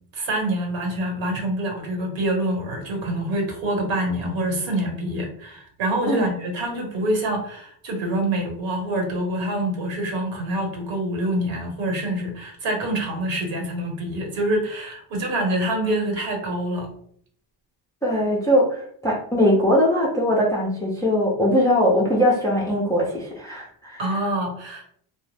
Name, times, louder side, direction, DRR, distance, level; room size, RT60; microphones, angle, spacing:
voice 1, 0.1-16.9 24.0-24.8, right 1 dB, 65° right, 1 dB, 1.1 m, -26 dB
voice 2, 18.0-24.0, equal, 10° left, -4 dB, 0.4 m, -21 dB
2.3 x 2.1 x 3.2 m, 0.62 s
cardioid pair, 130°, 50 cm